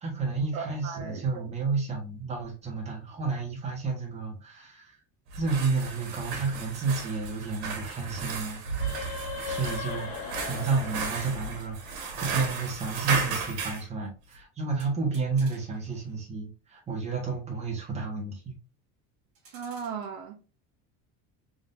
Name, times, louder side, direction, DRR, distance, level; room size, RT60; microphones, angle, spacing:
voice 1, 0.0-5.0 5.3-8.6 9.4-18.5, right 4 dB, 20° right, 1.3 m, -31 dB
voice 2, 0.5-1.4 19.5-20.4, right 6 dB, 65° right, 0.8 m, -37 dB
sound 1, 5.3-13.8, right 5 dB, 85° right, 1.5 m, -35 dB
sound 2, 8.6-12.2, equal, 50° left, 1.5 m, -36 dB
sound 3, 14.8-16.2 19.3-20.1, right 4 dB, 40° right, 1.5 m, -55 dB
3.7 x 3.6 x 2.6 m
cardioid pair, 175°, 35 cm